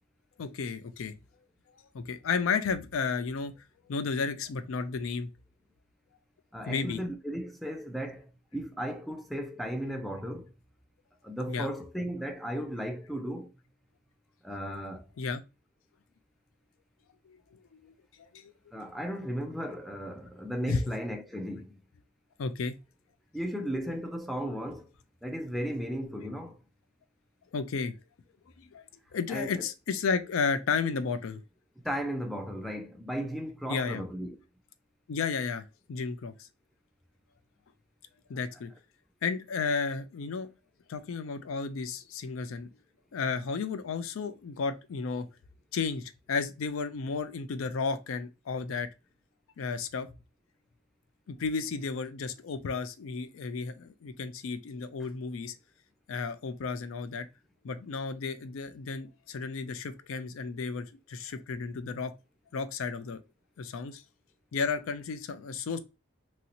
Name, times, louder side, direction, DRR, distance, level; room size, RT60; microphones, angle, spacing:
voice 1, 0.4-1.1 1.9-3.5 3.9-5.3 6.7-7.0 11.5-11.7 15.2-15.4 17.3-17.9 18.3-18.5 20.7-20.8 22.4-22.8 27.5-27.9 28.6-28.8 29.1-31.4 33.7-34.0 35.1-36.5 38.3-38.7 39.2-40.5 40.9-42.7 43.1-45.3 45.7-48.9 49.6-50.1 51.3-55.5 56.1-57.3 57.6-62.1 62.5-63.2 63.6-64.0 64.5-65.8, left 5 dB, 80° left, 0.4 m, -33 dB
voice 2, 6.5-10.5 11.2-13.5 14.4-15.2 18.7-21.8 23.3-24.9 25.2-26.6 29.3-29.6 31.8-34.4, equal, ahead, 0.3 m, -35 dB
3.0 x 2.7 x 2.8 m
head